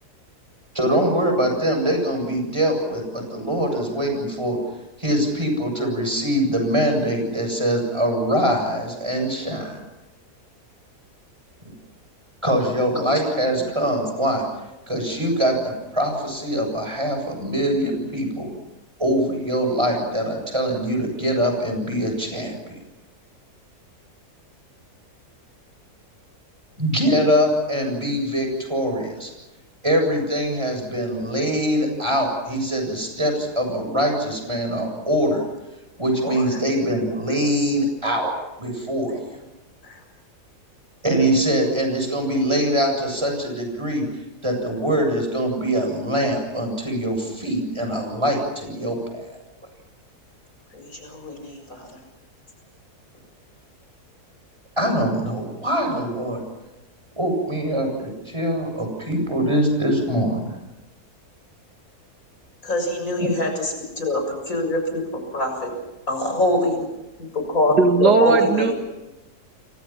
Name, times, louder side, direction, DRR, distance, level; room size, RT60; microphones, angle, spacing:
voice 1, 0.7-4.6 5.0-9.8 12.4-14.4 14.9-18.5 19.0-22.8 26.8-29.3 29.8-35.4 36.0-38.3 38.6-39.2 41.0-44.0 44.4-49.3 54.8-56.4 57.2-60.6 63.2-63.3, equal, 15° right, 3 dB, 7.6 m, -23 dB
voice 2, 50.7-51.6 62.6-63.5 64.0-64.2 64.5-65.0 65.3-65.7 66.1-66.8 67.5-68.7, left 1 dB, 55° left, 4 dB, 7.3 m, -23 dB
voice 3, 67.7-68.7, right 4 dB, 85° right, 4 dB, 3.1 m, -17 dB
29.5 x 25.5 x 6.0 m, 1.0 s
omnidirectional pair, 1.7 m